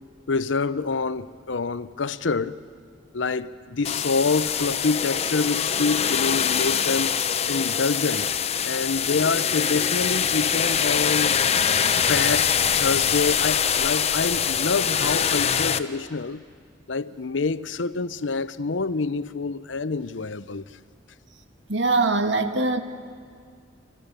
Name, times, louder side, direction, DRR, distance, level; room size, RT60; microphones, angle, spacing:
voice 1, 0.3-2.6 3.1-7.1 7.5-8.3 8.6-11.5 12.1-16.4 16.9-20.6, left 4 dB, 85° left, 0.8 m, -26 dB
sound 1, 3.8-15.8, left 7 dB, 35° left, 0.7 m, -23 dB
voice 2, 21.7-22.8, right 3 dB, 80° right, 1.7 m, -22 dB
30.0 x 26.0 x 6.8 m
head